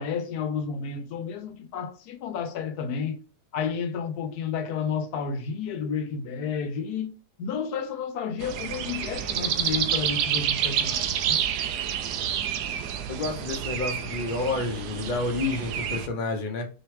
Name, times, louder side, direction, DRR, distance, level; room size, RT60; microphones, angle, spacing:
voice 1, 0.0-3.2 3.5-7.1 7.4-11.4, left 6 dB, 80° left, 1.2 m, -31 dB
sound 1, 8.4-16.1, right 9 dB, 80° right, 1.2 m, -29 dB
voice 2, 13.1-16.7, left 3 dB, 45° left, 0.7 m, -29 dB
4.8 x 3.2 x 3.1 m
omnidirectional pair, 1.7 m